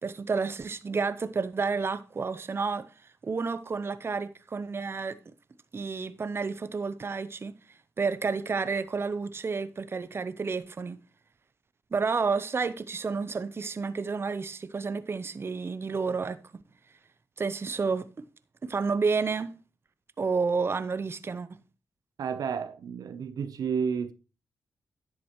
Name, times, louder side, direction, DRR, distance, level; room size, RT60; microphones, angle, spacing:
voice 1, 0.0-2.9 3.2-5.2 5.7-7.5 8.0-11.0 11.9-16.6 17.4-18.2 18.6-19.5 20.2-21.6, right 4 dB, 40° right, 0.7 m, -30 dB
voice 2, 22.2-24.1, right 6 dB, 70° right, 0.7 m, -31 dB
10.5 x 7.4 x 3.0 m
cardioid pair, 65°, 7 cm